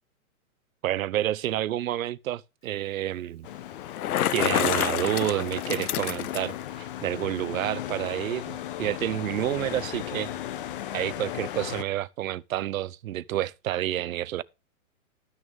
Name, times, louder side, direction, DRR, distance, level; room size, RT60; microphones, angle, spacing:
voice 1, 0.8-3.5 4.3-10.3 10.9-14.4, right 13 dB, 70° right, 0.7 m, -29 dB
sound 1, 3.4-11.8, left 12 dB, 40° left, 0.8 m, -37 dB
Bicycle, 3.8-6.6, left 12 dB, 80° left, 0.7 m, -28 dB
12.5 x 6.4 x 3.5 m
hypercardioid pair, 155°, 43 cm